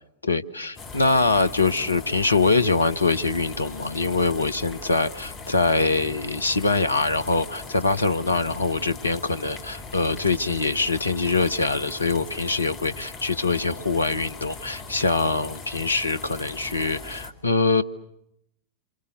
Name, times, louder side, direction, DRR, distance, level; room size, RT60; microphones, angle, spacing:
voice 1, 0.2-17.8, left 3 dB, 80° left, 13 dB, 1.1 m, -23 dB
sound 1, 0.8-17.3, left 4 dB, 30° left, 2.8 m, -40 dB
27.5 x 27.0 x 6.9 m, 0.78 s
figure-of-eight pair, 90°, 0 cm